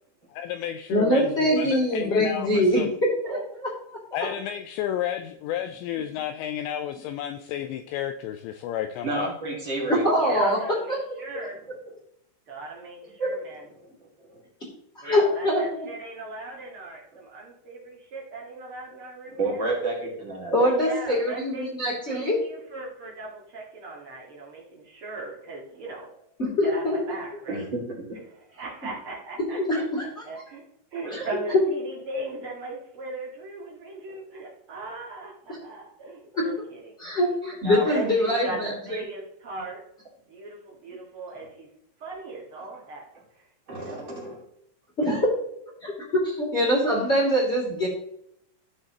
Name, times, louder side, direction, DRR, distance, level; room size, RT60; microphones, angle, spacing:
voice 1, 0.3-2.9 4.1-9.3, left 10 dB, 90° left, 8 dB, 2.5 m, -31 dB
voice 2, 0.9-2.8 9.9-10.6 10.9-11.0 13.2-13.3 14.9-15.9 20.5-22.4 26.4-27.0 29.5-30.0 31.1-31.3 36.3-36.4 37.0-39.0 45.0-45.1 45.8-45.9 46.2-47.9, equal, 20° left, -9 dB, 2.1 m, -23 dB
voice 3, 9.0-10.0 13.8-13.9 14.2-14.4 19.3-20.6 27.5-28.0 34.1-34.2 41.3-41.5 43.7-44.4, right 2 dB, 40° right, -3 dB, 1.8 m, -31 dB
voice 4, 10.1-11.5 12.5-13.7 15.0-19.6 20.6-21.7 22.1-26.1 26.6-27.7 28.6-30.6 30.9-37.4 37.6-39.8 40.3-41.7 42.0-43.0 43.3-43.5 43.7-44.1, right 2 dB, 70° right, -3 dB, 1.3 m, -38 dB
14.5 x 6.5 x 3.0 m, 0.75 s
omnidirectional pair, 5.6 m